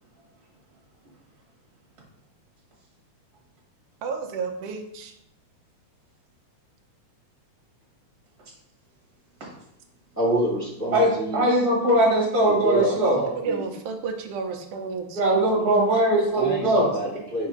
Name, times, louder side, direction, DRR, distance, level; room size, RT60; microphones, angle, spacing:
voice 1, 4.0-5.1 13.4-15.8, right 5 dB, 80° right, 3 dB, 1.3 m, -32 dB
voice 2, 10.2-11.4 12.5-13.6 16.4-17.5, right 1 dB, 10° left, -7 dB, 1.0 m, -27 dB
voice 3, 10.9-13.2 15.1-16.9, right 1 dB, 35° right, -3 dB, 2.1 m, -20 dB
5.2 x 4.8 x 3.9 m, 0.74 s
omnidirectional pair, 3.5 m